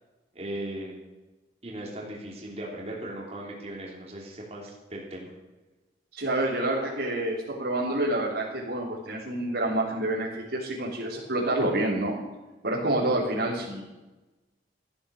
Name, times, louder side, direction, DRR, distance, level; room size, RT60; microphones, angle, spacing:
voice 1, 0.3-1.0 1.6-5.3, right 1 dB, 35° right, -2 dB, 3.3 m, -38 dB
voice 2, 6.1-12.1 12.6-13.8, right 1 dB, 90° right, -8 dB, 3.8 m, -28 dB
15.0 x 10.5 x 6.5 m, 1.1 s
head